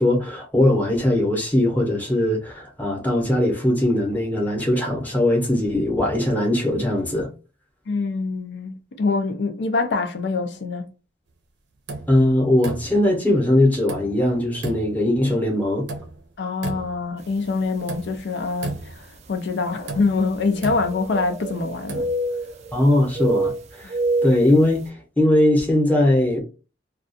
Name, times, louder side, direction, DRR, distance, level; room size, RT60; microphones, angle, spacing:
voice 1, 0.0-7.3 12.1-15.9 22.7-23.5 23.8-23.9 24.2-26.4, left 1 dB, 10° left, 0.7 m, -20 dB
voice 2, 7.9-10.9 16.4-22.1, left 4 dB, 70° left, 0.4 m, -25 dB
sound 1, 11.9-12.2 12.6-13.1 13.9-14.2 14.6-15.0 15.9-16.2 16.6-17.1 17.9-18.2 18.6-19.1 19.9-21.4 21.7-22.1, right 3 dB, 75° right, 0.6 m, -33 dB
sound 2, 17.5-17.6 18.4-18.5 20.4-21.6 21.9-22.8 23.2-24.5, right 2 dB, 35° right, 0.3 m, -26 dB
2.3 x 2.2 x 2.5 m
head